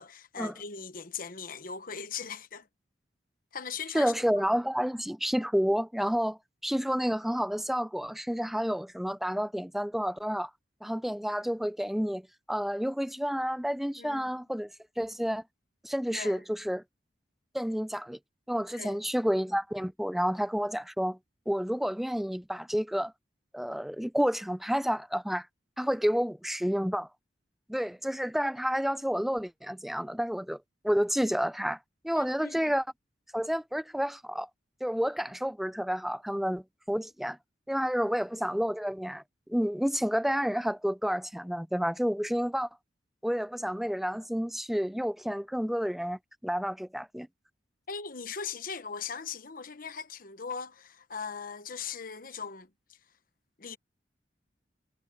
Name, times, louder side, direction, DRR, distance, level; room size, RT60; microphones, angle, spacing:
voice 1, 0.0-2.7 3.5-4.4 14.0-14.2 16.1-16.4 18.8-19.0 32.1-32.7 47.9-52.7 53.6-53.8, left 6 dB, 50° left, 1.1 m, -39 dB
voice 2, 3.9-10.5 10.8-14.7 15.0-15.4 15.8-16.8 17.5-18.2 18.5-21.2 21.5-23.1 23.5-25.5 25.8-27.1 27.7-30.6 30.8-31.8 32.0-32.8 33.3-34.5 34.8-37.4 37.7-39.2 39.5-42.7 43.2-47.3, equal, ahead, 0.4 m, -30 dB
head